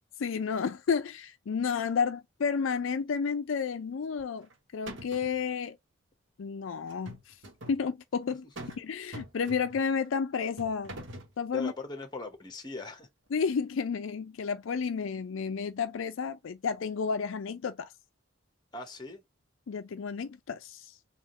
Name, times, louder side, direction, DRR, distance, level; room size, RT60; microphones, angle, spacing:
voice 1, 0.2-5.8 6.4-7.2 7.7-8.4 8.8-11.0 11.4-11.7 13.3-17.9 19.7-20.9, left 6 dB, 70° left, 0.4 m, -31 dB
sound 1, 4.2-4.5 4.9-5.4 6.9-7.8 8.6-8.8 9.1-9.9 10.6-11.3, right 1 dB, 65° right, 1.1 m, -44 dB
voice 2, 11.5-13.1 18.7-19.2, left 3 dB, 20° left, 0.9 m, -40 dB
3.5 x 2.4 x 4.2 m
head